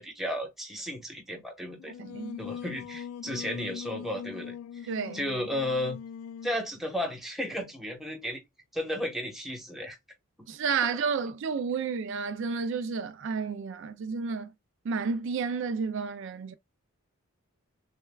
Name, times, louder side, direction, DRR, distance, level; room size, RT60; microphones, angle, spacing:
voice 1, 0.0-1.9 2.4-6.0 6.4-8.4 8.7-10.0, left 1 dB, ahead, 1.1 m, -34 dB
Singing, 1.8-6.7, left 8 dB, 90° left, 0.3 m, -41 dB
voice 2, 2.0-2.4 4.9-5.2 10.5-14.5 14.8-16.5, right 5 dB, 60° right, 0.3 m, -31 dB
6.4 x 2.2 x 2.3 m
head